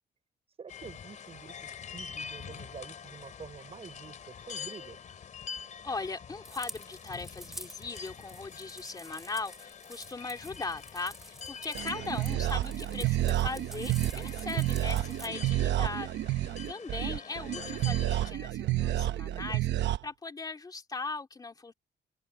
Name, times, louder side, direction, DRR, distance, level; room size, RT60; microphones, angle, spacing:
voice 1, 0.6-5.0, right 6 dB, 35° right, 6.3 m, -47 dB
sound 1, 0.7-18.3, left 6 dB, 45° left, 3.7 m, -46 dB
voice 2, 5.8-21.7, left 3 dB, 20° left, 2.6 m, -39 dB
sound 2, 6.4-15.3, equal, ahead, 2.4 m, -48 dB
sound 3, 11.8-20.0, right 14 dB, 80° right, 0.9 m, -30 dB
open air
cardioid pair, 155°, 18 cm